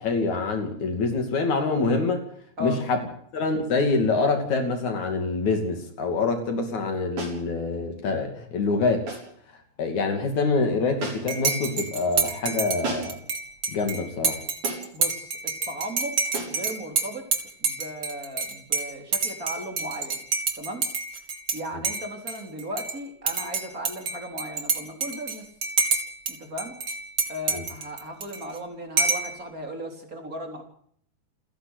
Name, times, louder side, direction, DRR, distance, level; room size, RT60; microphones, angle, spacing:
voice 1, 0.0-2.3 2.6-3.0 3.3-9.1 9.8-13.2 13.7-14.4 27.5-27.6, left 3 dB, 70° left, 5 dB, 4.0 m, -25 dB
sound 1, 7.2-7.5 9.1-9.4 11.0-11.4 12.8-13.3 14.6-15.0 16.3-16.6, right 3 dB, 85° right, 8.7 m, -33 dB
Dishes pots and pans / Cutlery silverware / Chink clink, 11.3-21.6 21.8-22.9 23.3-26.3 26.6-28.6 29.0-29.3, right 4 dB, 40° right, 3.0 m, -28 dB
voice 2, 14.9-16.2 16.5-17.3 17.6-20.2 20.6-20.9 21.5-25.5 26.3-26.7 27.3-30.6, right 1 dB, 25° right, 3 dB, 4.2 m, -36 dB
29.0 x 11.0 x 8.2 m, 0.64 s
omnidirectional pair, 3.5 m